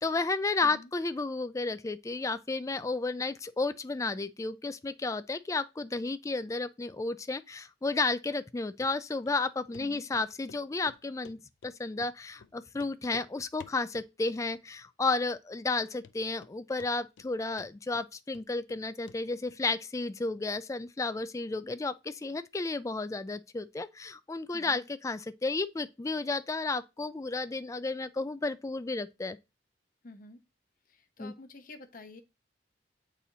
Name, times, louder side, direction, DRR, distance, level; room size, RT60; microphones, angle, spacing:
voice 1, 0.0-29.4 31.2-31.3, left 3 dB, 15° left, 0.3 m, -32 dB
Run, 8.8-8.9 9.3-9.4 9.7-9.9 10.1-10.6 10.9-11.7 12.0-12.1 12.4-12.5 12.8-13.3 13.6-14.1 14.4-14.9 15.2-15.3 15.7-15.8 16.0-16.5 16.8-17.3 17.6-18.8 19.1-19.2 19.5-19.6, left 5 dB, 85° left, 0.4 m, -52 dB
voice 2, 24.5-24.8 30.0-30.4 30.9-32.2, left 2 dB, 50° left, 0.9 m, -49 dB
8.5 x 4.1 x 2.8 m
head